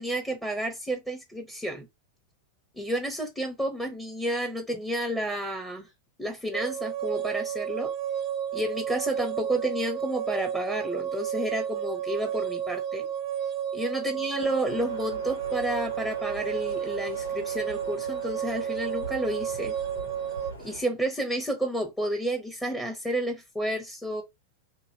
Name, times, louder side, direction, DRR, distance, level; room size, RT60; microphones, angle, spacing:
voice 1, 0.0-1.9 2.7-5.9 6.2-7.9 8.5-13.1 13.7-19.7 20.6-24.2, right 1 dB, 5° left, 1.2 m, -31 dB
sound 1, 6.5-20.5, right 9 dB, 40° right, 0.8 m, -32 dB
sound 2, 14.7-20.8, right 1 dB, 90° left, 1.6 m, -43 dB
2.9 x 2.7 x 4.1 m
hypercardioid pair, 95°, 0 cm